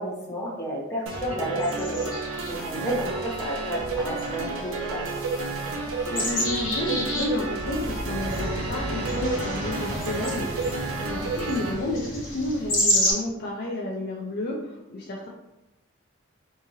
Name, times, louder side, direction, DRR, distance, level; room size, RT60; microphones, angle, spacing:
voice 1, 0.0-5.0, equal, 15° left, -6 dB, 0.7 m, -31 dB
sound 1, 1.1-11.7, right 3 dB, 80° right, 0.5 m, -31 dB
sound 2, 1.6-13.1, left 1 dB, 80° left, 1.1 m, -32 dB
voice 2, 6.1-15.3, left 1 dB, 50° left, -2 dB, 0.4 m, -31 dB
sound 3, 7.3-13.2, equal, 20° right, 1.3 m, -35 dB
2.8 x 2.5 x 2.7 m, 0.93 s
head